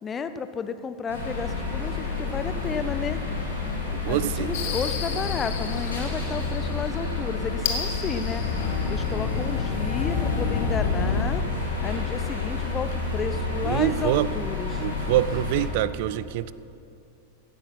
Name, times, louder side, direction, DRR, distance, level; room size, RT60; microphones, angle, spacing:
voice 1, 0.0-3.2 4.1-8.4 8.9-11.4 11.8-14.8, left 5 dB, 20° left, 11 dB, 0.7 m, -32 dB
sound 1, 1.1-15.7, left 3 dB, 85° left, 4.0 m, -30 dB
voice 2, 3.9-4.5 13.6-14.3 14.8-16.5, right 14 dB, 50° right, 17 dB, 0.4 m, -25 dB
sound 2, 4.5-11.2, left 6 dB, 50° left, 1.5 m, -30 dB
16.5 x 10.5 x 5.7 m, 2.6 s
figure-of-eight pair, 90°, 0 cm